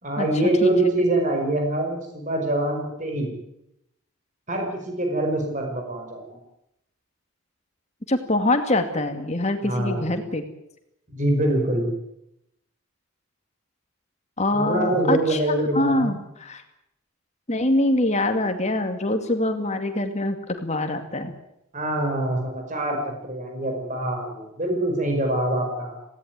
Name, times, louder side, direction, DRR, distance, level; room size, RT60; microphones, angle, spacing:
voice 1, 0.0-3.3 4.5-6.4 9.6-10.0 11.1-11.9 14.5-16.2 21.7-26.0, right 1 dB, 35° right, 2 dB, 5.3 m, -24 dB
voice 2, 8.1-10.4 14.4-15.4 15.7-16.6 17.5-21.3, left 1 dB, 30° left, 7 dB, 2.4 m, -24 dB
19.0 x 17.5 x 9.5 m, 0.82 s
head